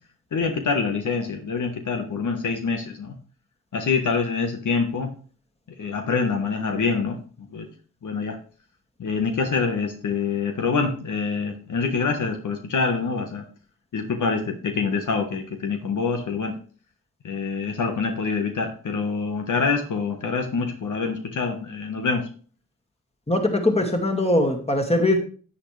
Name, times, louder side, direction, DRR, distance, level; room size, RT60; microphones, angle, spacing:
voice 1, 0.3-3.1 3.7-5.1 5.8-7.7 8.0-8.4 9.0-13.4 13.9-16.5 17.2-22.3, left 4 dB, 70° left, 5 dB, 1.4 m, -25 dB
voice 2, 23.3-25.2, left 1 dB, 20° left, 3 dB, 2.3 m, -21 dB
9.8 x 8.4 x 3.4 m, 0.41 s
cardioid pair, 50°, 32 cm